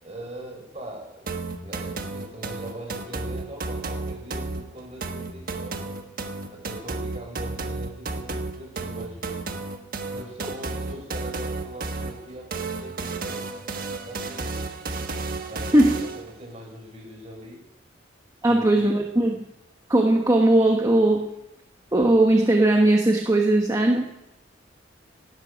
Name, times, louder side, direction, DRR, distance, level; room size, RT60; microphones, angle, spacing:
voice 1, 0.0-1.3 1.6-6.0 6.5-9.4 10.1-13.5 14.1-14.6 15.5-17.6 18.5-19.0, right 1 dB, 35° right, 0 dB, 5.3 m, -41 dB
sound 1, 1.3-16.3, right 3 dB, 50° right, 1.4 m, -32 dB
voice 2, 18.4-19.4 19.9-21.3 21.9-24.2, right 1 dB, 20° right, 2 dB, 1.1 m, -19 dB
18.0 x 12.0 x 5.2 m, 0.87 s
head